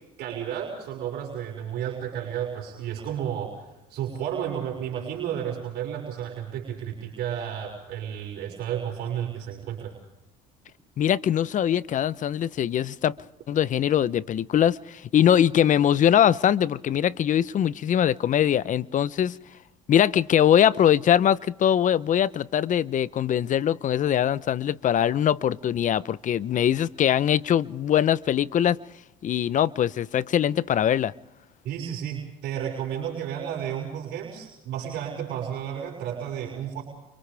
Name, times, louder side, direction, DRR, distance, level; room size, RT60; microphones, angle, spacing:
voice 1, 0.2-9.9 31.6-36.8, right 9 dB, 65° right, 6.0 m, -32 dB
voice 2, 11.0-13.1 13.5-19.4 19.9-28.8 29.2-31.1, left 10 dB, 45° left, 0.8 m, -22 dB
29.5 x 29.0 x 3.5 m
supercardioid pair, 90°, 18 cm